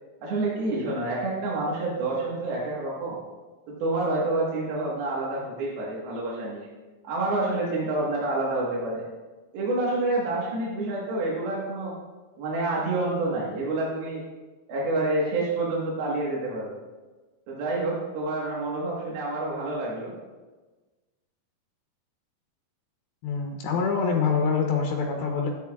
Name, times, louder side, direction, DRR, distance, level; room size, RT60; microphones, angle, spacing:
voice 1, 0.2-3.2 3.7-6.7 7.0-9.0 9.5-12.0 12.4-14.2 14.7-16.7 17.5-20.1, right 2 dB, 90° right, -5 dB, 3.4 m, -28 dB
voice 2, 23.2-25.5, left 5 dB, 85° left, 1 dB, 2.8 m, -25 dB
13.0 x 10.0 x 2.4 m, 1.3 s
omnidirectional pair, 4.2 m